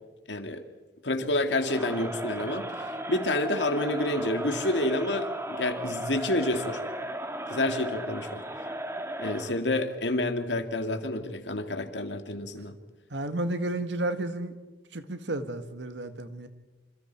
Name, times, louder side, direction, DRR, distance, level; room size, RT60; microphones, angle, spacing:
voice 1, 0.3-0.6 1.0-6.8 7.5-8.4 9.2-12.8, left 2 dB, 85° left, 8 dB, 2.0 m, -29 dB
Crowd, 1.5-9.6, right 1 dB, 15° right, 1.6 m, -35 dB
voice 2, 13.1-14.6 14.9-16.5, right 1 dB, 90° right, 9 dB, 1.8 m, -32 dB
28.0 x 26.5 x 4.6 m, 1.2 s
head